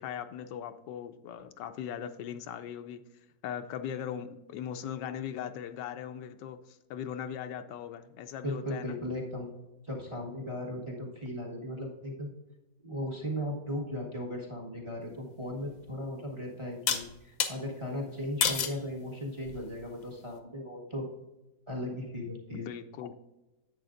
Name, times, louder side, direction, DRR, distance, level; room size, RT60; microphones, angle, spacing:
voice 1, 0.0-3.0 3.4-9.0 22.5-23.1, left 9 dB, 80° left, 9 dB, 1.2 m, -39 dB
voice 2, 8.4-9.5 9.8-12.3 12.8-21.1 21.7-22.7, left 1 dB, 20° right, 0 dB, 1.2 m, -37 dB
sound 1, 15.5-15.6 16.9-17.5 18.4-18.8 19.4-19.9, left 7 dB, 60° left, 1.1 m, -29 dB
10.5 x 7.9 x 2.5 m, 1.0 s
omnidirectional pair, 1.9 m